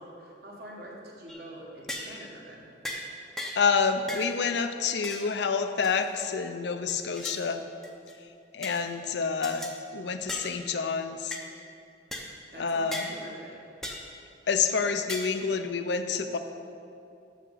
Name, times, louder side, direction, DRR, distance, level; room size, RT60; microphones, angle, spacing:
voice 1, 0.0-2.6 12.5-13.6, right 1 dB, 55° right, -3 dB, 1.6 m, -45 dB
sound 1, 1.3-1.5 1.9-2.2 2.8-3.1 3.4-3.7 4.1-4.3 5.0-5.3 5.8-6.3 6.9-7.4 7.8-8.1 8.6-8.8 9.4-9.7 10.3-10.5 11.3-11.4 12.1-12.3 12.9-13.1 13.8-14.1 15.1-15.4, left 1 dB, 5° left, 0.6 m, -37 dB
voice 2, 3.6-7.6 8.5-11.4 12.6-13.1 14.5-16.4, left 5 dB, 75° left, 8 dB, 0.5 m, -28 dB
6.6 x 6.2 x 6.7 m, 2.6 s
head